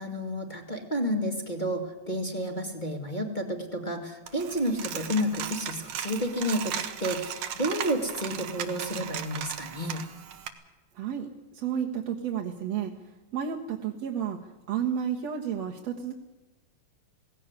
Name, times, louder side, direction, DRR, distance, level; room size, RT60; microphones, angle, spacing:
voice 1, 0.0-10.0, equal, 15° left, 2 dB, 2.1 m, -31 dB
Coin (dropping), 4.3-10.5, right 9 dB, 80° right, 2.9 m, -37 dB
voice 2, 11.0-11.3 11.5-12.9 13.3-14.4 14.7-16.1, right 8 dB, 65° right, 0 dB, 2.5 m, -31 dB
18.5 x 16.5 x 9.7 m, 1.1 s
omnidirectional pair, 3.4 m